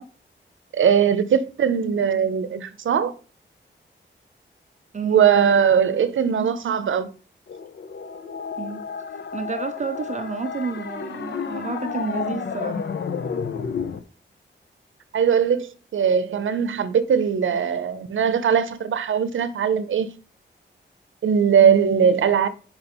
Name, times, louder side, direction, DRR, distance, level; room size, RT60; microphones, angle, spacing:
voice 1, 0.7-3.1 5.0-7.1 15.1-20.1 21.2-22.5, right 7 dB, 85° right, 0.6 m, -20 dB
voice 2, 4.9-5.3 8.6-8.8 9.1-12.9, right 5 dB, 40° right, 0.5 m, -30 dB
sound 1, 7.5-14.0, left 6 dB, 65° left, 0.7 m, -31 dB
5.7 x 5.4 x 4.4 m
wide cardioid pair, 140°, 20 cm